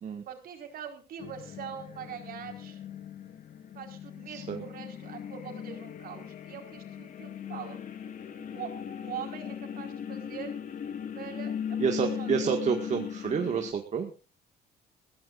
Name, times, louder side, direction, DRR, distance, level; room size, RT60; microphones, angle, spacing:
voice 1, 0.3-2.8 3.7-10.5 11.1-12.6, right 8 dB, 60° right, 4 dB, 4.5 m, -43 dB
sound 1, 1.2-13.7, left 8 dB, 50° left, 1.9 m, -38 dB
voice 2, 4.3-4.6 11.8-14.3, right 7 dB, 45° right, 4 dB, 1.8 m, -29 dB
21.5 x 16.0 x 2.5 m, 0.33 s
cardioid pair, 110°, 17 cm